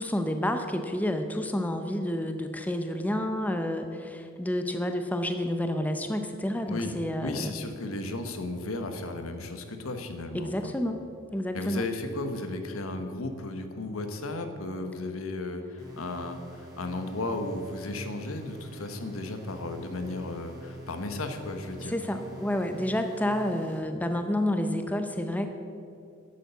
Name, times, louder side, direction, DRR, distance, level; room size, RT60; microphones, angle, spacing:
voice 1, 0.0-7.5 10.3-11.0 11.3-11.9 21.8-25.5, left 1 dB, 10° left, 6 dB, 0.6 m, -29 dB
voice 2, 7.2-10.7 11.5-21.9, left 2 dB, 80° left, 7 dB, 1.2 m, -35 dB
sound 1, 15.8-23.8, right 1 dB, 20° right, 2.7 m, -46 dB
10.5 x 8.5 x 6.9 m, 2.6 s
head